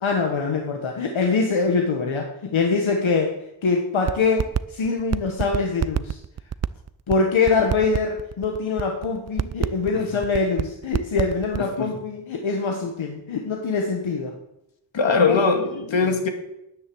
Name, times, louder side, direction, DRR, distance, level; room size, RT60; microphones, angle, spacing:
voice 1, 0.0-3.3 3.6-6.2 7.1-14.3 15.0-15.4 15.9-16.1, left 4 dB, 90° left, 2 dB, 1.5 m, -24 dB
sound 1, 4.1-4.6 4.8-11.6, right 8 dB, 35° right, 0.4 m, -25 dB
voice 2, 14.9-16.3, left 4 dB, 75° left, 4 dB, 2.2 m, -20 dB
10.5 x 9.6 x 7.8 m, 0.86 s
wide cardioid pair, 85°, 46 cm